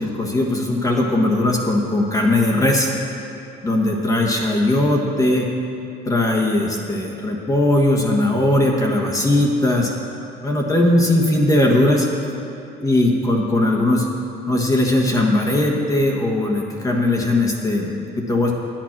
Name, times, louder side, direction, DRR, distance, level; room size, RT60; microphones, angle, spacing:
voice 1, 0.0-2.9 3.6-5.5 6.0-9.9 10.4-12.1 12.8-14.1 14.5-18.5, left 1 dB, 20° left, 0 dB, 1.3 m, -19 dB
10.0 x 8.9 x 6.0 m, 2.8 s
cardioid pair, 110°, 17 cm